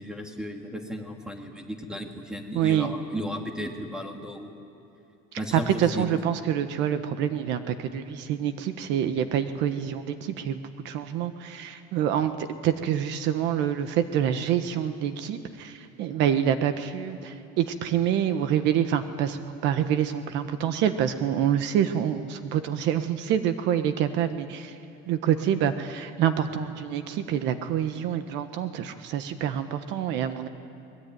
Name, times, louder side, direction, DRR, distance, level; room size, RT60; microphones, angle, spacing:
voice 1, 0.0-4.5 5.4-6.1, equal, 5° right, 3 dB, 2.4 m, -35 dB
voice 2, 2.5-2.9 5.5-24.7 25.1-30.5, right 9 dB, 60° right, 9 dB, 1.3 m, -26 dB
23.5 x 22.0 x 9.4 m, 2.8 s
cardioid pair, 155°, 21 cm